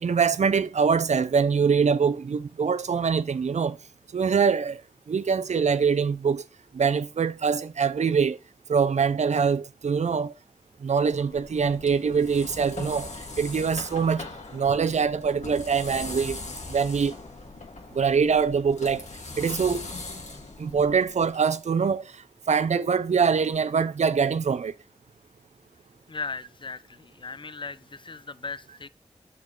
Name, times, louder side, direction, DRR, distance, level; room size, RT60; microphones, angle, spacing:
voice 1, 0.0-3.8 4.1-4.8 5.1-6.4 6.7-8.4 8.7-10.3 10.8-13.1 13.4-14.3 14.5-16.4 16.7-17.2 17.9-19.0 19.4-19.9 20.6-22.2 22.5-24.7, right 6 dB, 80° right, 0.4 m, -24 dB
sound 1, 11.0-21.4, left 3 dB, 80° left, 1.8 m, -40 dB
voice 2, 26.1-28.9, left 4 dB, 45° left, 0.4 m, -37 dB
6.8 x 6.1 x 3.8 m
wide cardioid pair, 50°, 12 cm